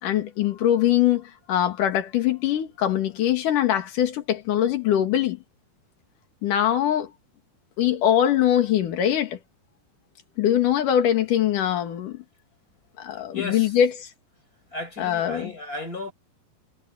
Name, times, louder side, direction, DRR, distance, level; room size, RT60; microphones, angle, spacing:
voice 1, 0.0-5.4 6.4-7.1 7.8-9.4 10.4-12.2 13.0-14.1 15.0-15.5, left 11 dB, 65° left, 3.4 m, -22 dB
voice 2, 13.3-13.7 14.7-16.1, left 3 dB, 20° left, 8.3 m, -34 dB
omnidirectional pair, 4.2 m